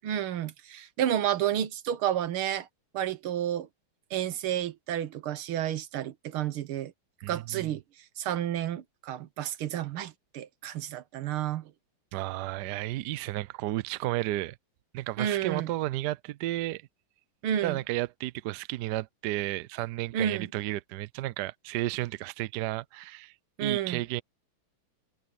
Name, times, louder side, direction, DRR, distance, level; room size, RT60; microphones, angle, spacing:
voice 1, 0.0-2.7 2.9-3.7 4.1-6.9 7.3-7.8 8.2-11.6 15.2-15.7 17.4-17.8 20.1-20.5 23.6-24.0, right 10 dB, 85° right, 1.9 m, -30 dB
voice 2, 7.2-7.7 12.1-14.5 14.9-16.8 17.6-23.3 23.6-24.2, right 16 dB, 70° right, 1.0 m, -32 dB
omnidirectional pair, 2.3 m